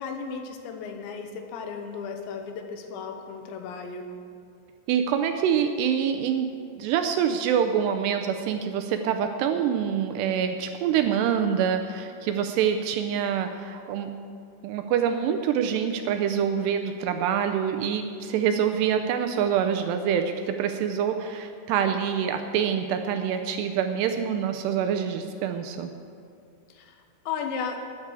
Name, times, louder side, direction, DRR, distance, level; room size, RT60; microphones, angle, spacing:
voice 1, 0.0-4.1 26.7-26.9 27.3-27.9, left 5 dB, 80° left, 5 dB, 3.3 m, -35 dB
voice 2, 4.9-6.5 6.8-14.1 14.6-25.9, right 8 dB, 80° right, 6 dB, 2.5 m, -26 dB
19.5 x 9.6 x 4.8 m, 2.3 s
omnidirectional pair, 5.2 m